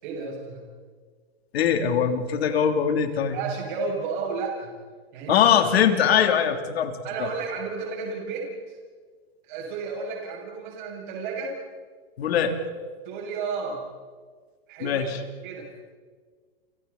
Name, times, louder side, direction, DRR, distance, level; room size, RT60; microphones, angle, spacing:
voice 1, 0.0-0.6 3.1-4.7 5.1-5.5 7.0-8.8 9.5-11.6 13.0-13.8 14.7-15.7, right 4 dB, 50° right, -1 dB, 7.4 m, -32 dB
voice 2, 1.5-3.4 5.3-7.3 12.2-12.5 14.8-15.2, left 8 dB, 85° left, 5 dB, 3.6 m, -22 dB
30.0 x 29.5 x 4.3 m, 1.5 s
supercardioid pair, 160°, 30 cm